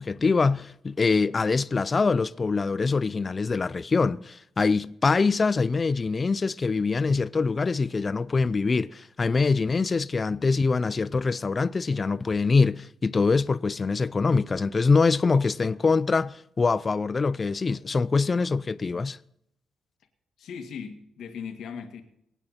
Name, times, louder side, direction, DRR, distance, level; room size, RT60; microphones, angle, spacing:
voice 1, 0.0-19.2, left 4 dB, 25° left, 0.4 m, -24 dB
voice 2, 20.4-22.0, left 6 dB, 75° left, 2.0 m, -38 dB
24.0 x 9.1 x 4.3 m
cardioid pair, 140°, 0 cm